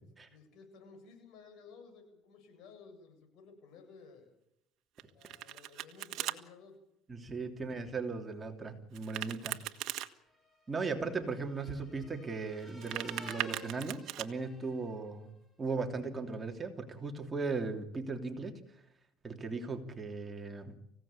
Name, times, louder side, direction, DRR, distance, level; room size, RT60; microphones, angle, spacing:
voice 1, 0.2-4.3 5.1-6.8 7.2-7.3, left 5 dB, 65° left, 5 dB, 7.9 m, -55 dB
Domestic sounds home sounds, 5.0-6.4 8.9-10.1 12.6-14.3, right 14 dB, 65° right, 1.5 m, -39 dB
voice 2, 7.1-9.6 10.7-15.3 15.6-18.6 19.2-20.7, right 4 dB, 25° right, 4 dB, 3.1 m, -37 dB
sound 1, 9.7-15.2, left 1 dB, 15° left, 4.6 m, -54 dB
25.0 x 16.5 x 8.8 m, 0.81 s
supercardioid pair, 105°, 0 cm